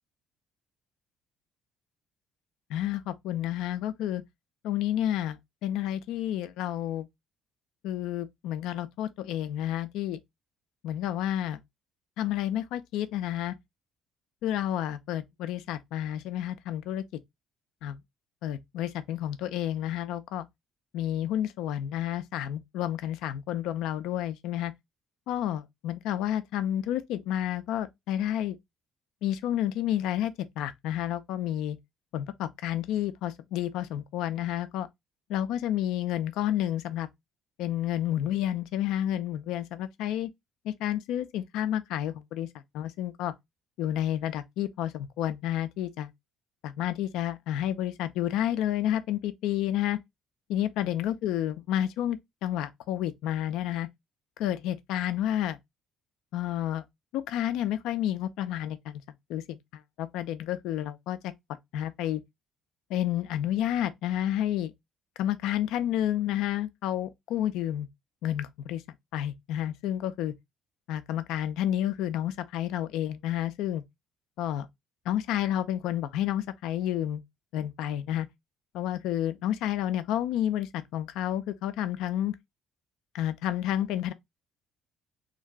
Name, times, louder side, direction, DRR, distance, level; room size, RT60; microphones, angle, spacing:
voice 1, 2.7-4.2 4.6-7.1 7.8-10.2 10.8-11.6 12.2-13.5 14.4-17.0 17.8-18.0 18.4-20.5 20.9-24.7 25.3-28.6 29.2-31.8 32.1-34.9 35.3-37.1 37.6-40.3 40.6-42.5 42.7-43.3 43.8-46.1 46.6-50.0 50.5-53.9 54.4-55.6 56.3-56.8 57.1-59.0 59.3-59.6 60.0-61.3 61.7-62.2 62.9-64.7 65.2-67.9 68.2-68.8 69.1-70.3 70.9-73.8 74.4-74.7 75.1-77.2 77.5-78.3 78.7-82.3 83.1-84.1, left 12 dB, 65° left, 0.3 m, -30 dB
2.5 x 2.2 x 3.1 m
figure-of-eight pair, 50°, 0 cm